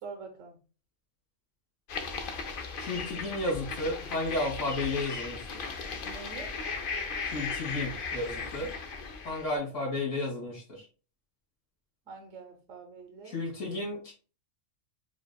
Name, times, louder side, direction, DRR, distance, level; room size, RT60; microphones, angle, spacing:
voice 1, 0.0-0.6 6.0-6.5 12.1-13.4, right 4 dB, 85° right, 3 dB, 1.3 m, -45 dB
sound 1, 1.9-9.6, left 4 dB, 55° left, 0.7 m, -37 dB
voice 2, 2.8-5.7 7.2-8.7 9.2-10.9 13.2-14.1, left 2 dB, 75° left, -3 dB, 1.7 m, -33 dB
7.0 x 2.5 x 2.2 m, 0.36 s
omnidirectional pair, 1.3 m